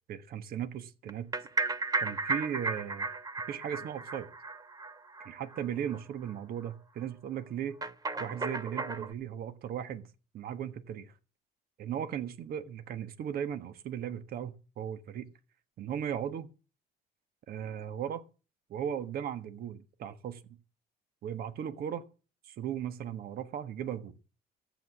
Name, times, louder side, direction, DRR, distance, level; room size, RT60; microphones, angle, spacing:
voice 1, 0.1-1.3 2.0-3.1 3.5-4.3 5.2-7.8 8.2-10.1 10.3-11.1 11.8-15.3 15.8-16.5 17.5-18.2 18.7-20.4 21.2-22.0 22.4-24.1, right 9 dB, 65° right, 1.4 m, -37 dB
sound 1, 1.1-5.6 5.9-6.0 6.3-6.4 6.7-6.8 7.8-9.1, right 3 dB, 20° right, 1.0 m, -34 dB
13.5 x 8.3 x 7.2 m
cardioid pair, 110°, 17 cm